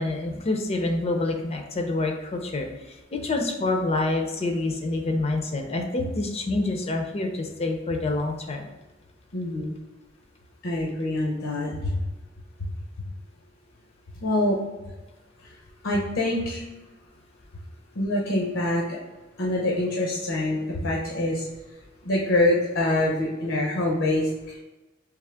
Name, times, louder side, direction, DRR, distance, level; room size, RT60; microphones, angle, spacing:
voice 1, 0.0-8.7, left 2 dB, 35° left, 3 dB, 0.4 m, -27 dB
voice 2, 9.3-9.7 10.6-12.0 12.6-12.7 14.2-14.6 15.8-16.6 18.0-19.0 19.4-21.5 22.0-24.6, left 1 dB, 80° left, -3 dB, 0.7 m, -25 dB
3.6 x 3.1 x 3.3 m, 1.1 s
head